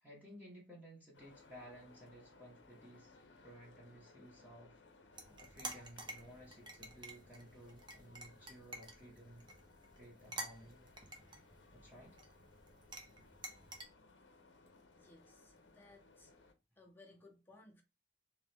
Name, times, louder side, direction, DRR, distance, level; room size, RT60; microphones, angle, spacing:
voice 1, 0.0-3.2 3.4-9.4 10.0-10.9 11.7-12.2, equal, 10° right, 1.2 m, -56 dB
sound 1, 1.1-16.5, left 3 dB, 70° left, 0.7 m, -64 dB
sound 2, 5.1-13.8, right 2 dB, 25° right, 0.7 m, -51 dB
voice 2, 14.9-16.3 16.8-17.8, left 2 dB, 10° left, 0.9 m, -61 dB
3.5 x 3.0 x 3.4 m
head